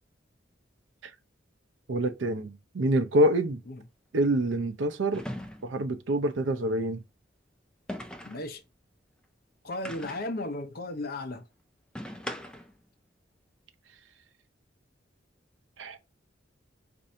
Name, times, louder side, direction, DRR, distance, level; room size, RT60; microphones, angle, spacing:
voice 1, 1.9-3.6 4.1-5.2 5.6-7.0 15.8-16.0, right 1 dB, 85° right, 0.6 m, -26 dB
sound 1, 2.9-3.1 5.1-5.9 7.9-8.5 9.8-10.4 11.9-12.8, equal, 5° left, 0.3 m, -39 dB
voice 2, 8.2-8.6 9.6-11.4, left 2 dB, 55° left, 0.7 m, -35 dB
4.3 x 2.6 x 2.6 m
head